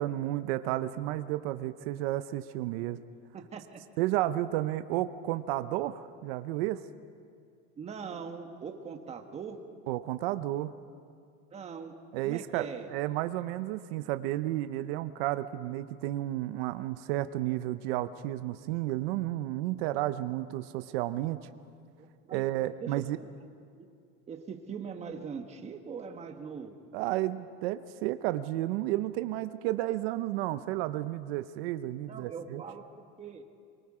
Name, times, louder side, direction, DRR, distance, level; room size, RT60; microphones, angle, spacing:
voice 1, 0.0-3.0 4.0-6.8 9.9-10.7 12.1-21.4 22.3-23.2 26.9-32.6, right 15 dB, 90° right, 11 dB, 0.8 m, -32 dB
voice 2, 3.3-3.8 7.8-9.6 11.5-11.9 12.2-12.9 22.0-22.5 22.8-23.0 23.8-23.9 24.3-26.8 32.1-32.8 33.2-33.4, right 6 dB, 20° right, 5 dB, 1.3 m, -41 dB
24.0 x 22.5 x 4.9 m, 2.3 s
cardioid pair, 160°, 29 cm